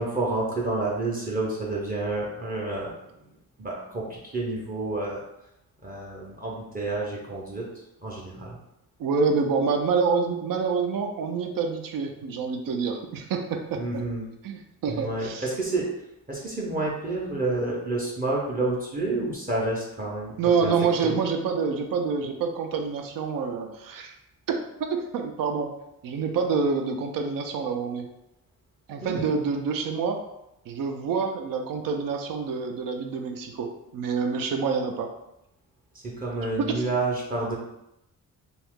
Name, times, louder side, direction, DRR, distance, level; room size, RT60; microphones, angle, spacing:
voice 1, 0.0-2.9 3.6-5.2 5.8-7.7 8.0-8.6 13.8-14.3 14.9-15.9 16.3-20.7 21.0-21.2 29.0-29.3 35.9-37.6, right 2 dB, 25° right, -4 dB, 0.6 m, -29 dB
voice 2, 9.0-14.0 14.4-15.4 20.4-24.1 24.5-25.7 26.0-28.1 28.9-30.3 30.7-35.1 36.7-36.8, right 5 dB, 75° right, 4 dB, 0.5 m, -27 dB
2.8 x 2.4 x 3.5 m, 0.86 s
cardioid pair, 120°, 35 cm